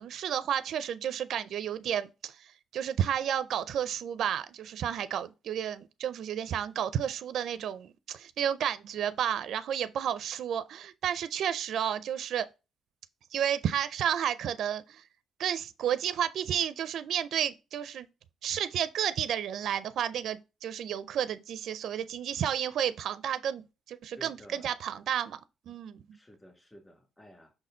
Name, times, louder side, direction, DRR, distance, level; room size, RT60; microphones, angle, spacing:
voice 1, 0.0-12.5 13.3-15.1 15.4-18.1 18.4-25.4 25.7-26.0, right 9 dB, 65° right, 0.4 m, -32 dB
voice 2, 24.1-24.8 26.1-27.5, equal, 15° left, 2.1 m, -53 dB
5.8 x 4.2 x 3.8 m
cardioid pair, 125°, 0 cm